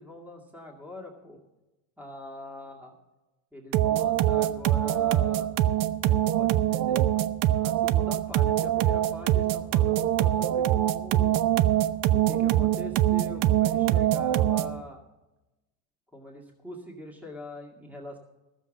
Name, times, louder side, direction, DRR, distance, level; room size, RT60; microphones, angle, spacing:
voice 1, 0.0-1.4 2.0-2.9 3.5-5.5 6.0-7.1 7.6-11.4 12.1-15.0 16.1-18.2, left 2 dB, 5° right, 0 dB, 2.1 m, -43 dB
sound 1, 3.7-14.8, right 13 dB, 50° right, 0.7 m, -24 dB
13.5 x 7.3 x 7.2 m, 1.0 s
supercardioid pair, 100°, 44 cm